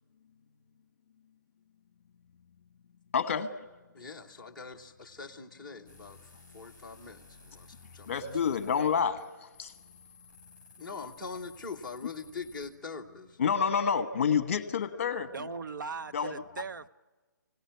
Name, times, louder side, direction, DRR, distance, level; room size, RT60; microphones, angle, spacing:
voice 1, 3.1-3.5 8.1-9.7 13.4-15.5 16.1-16.3, left 6 dB, 40° left, 11 dB, 1.2 m, -28 dB
voice 2, 3.9-6.2 6.5-8.1 10.8-13.4, left 4 dB, ahead, -7 dB, 1.0 m, -43 dB
sound 1, 5.9-12.7, left 4 dB, 15° right, 4.0 m, -55 dB
voice 3, 15.3-16.9, right 5 dB, 75° right, 13 dB, 0.8 m, -39 dB
24.5 x 17.5 x 9.2 m, 1.3 s
hypercardioid pair, 175°, 11 cm